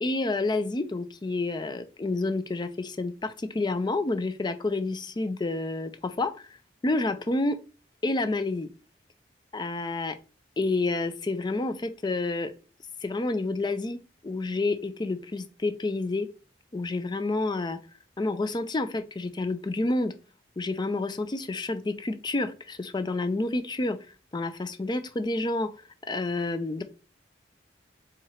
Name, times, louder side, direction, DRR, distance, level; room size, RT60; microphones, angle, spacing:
voice 1, 0.0-6.3 6.8-7.6 8.0-8.7 9.5-10.2 10.6-12.5 13.0-14.0 14.2-16.3 16.7-17.8 18.2-20.1 20.6-24.0 24.3-25.7 26.1-26.8, left 2 dB, 25° left, 10 dB, 0.4 m, -29 dB
4.4 x 3.7 x 3.1 m, 0.35 s
head